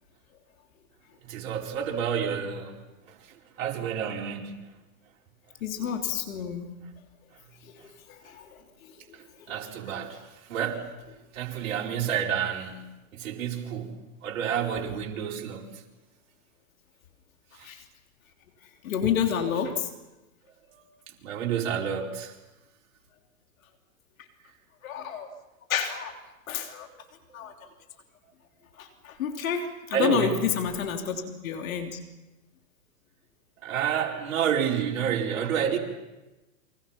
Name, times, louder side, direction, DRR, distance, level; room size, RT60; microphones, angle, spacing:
voice 1, 1.2-2.7 3.6-4.6 9.5-10.2 10.5-10.9 11.3-13.9 14.2-15.7 17.6-17.7 20.7-20.8 21.2-22.3 29.9-30.3 33.6-35.8, right 8 dB, 65° right, 4.8 m, -29 dB
voice 2, 5.6-6.7 7.7-7.8 8.1-8.5 9.5-9.6 17.6-17.8 18.8-19.9 24.8-25.3 25.7-26.2 26.5-26.9 27.3-27.5 28.8-32.0, left 8 dB, 70° left, 3.3 m, -29 dB
29.0 x 24.0 x 5.8 m
hypercardioid pair, 110°, 42 cm